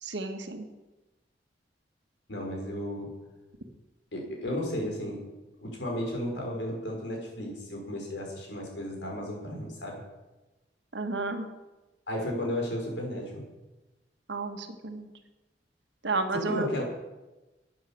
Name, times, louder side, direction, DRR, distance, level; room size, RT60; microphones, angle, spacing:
voice 1, 0.0-0.7 10.9-11.5 14.3-15.1 16.0-16.8, right 3 dB, 85° right, 6 dB, 1.5 m, -32 dB
voice 2, 2.3-3.2 4.1-5.3 5.6-10.0 12.1-13.4 16.3-16.8, left 1 dB, 80° left, 0 dB, 4.4 m, -34 dB
11.5 x 9.3 x 7.0 m, 1.1 s
head